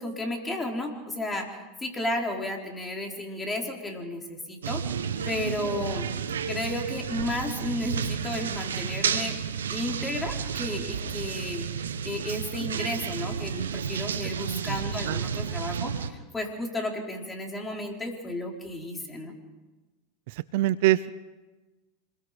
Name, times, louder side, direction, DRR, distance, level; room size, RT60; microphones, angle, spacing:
voice 1, 0.0-4.8 5.3-6.1 6.5-9.4 9.7-19.3, left 1 dB, 15° left, 1 dB, 4.6 m, -33 dB
sound 1, 4.6-16.1, right 7 dB, 85° right, 1.2 m, -31 dB
voice 2, 20.3-21.2, right 15 dB, 65° right, 17 dB, 0.7 m, -24 dB
26.5 x 21.5 x 5.3 m, 1.2 s
hypercardioid pair, 100°, 0 cm